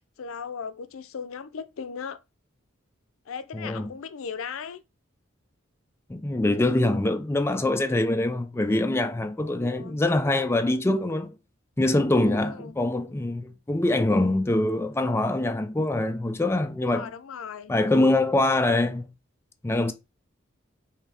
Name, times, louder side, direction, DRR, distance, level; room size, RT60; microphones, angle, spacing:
voice 1, 0.2-2.2 3.3-4.8 9.4-10.0 12.1-12.8 16.8-17.7, left 6 dB, 90° left, 0.5 m, -37 dB
voice 2, 3.5-3.9 6.1-11.4 11.8-17.1 17.7-19.1 19.6-19.9, left 2 dB, 10° left, 0.3 m, -24 dB
5.6 x 2.7 x 3.4 m
head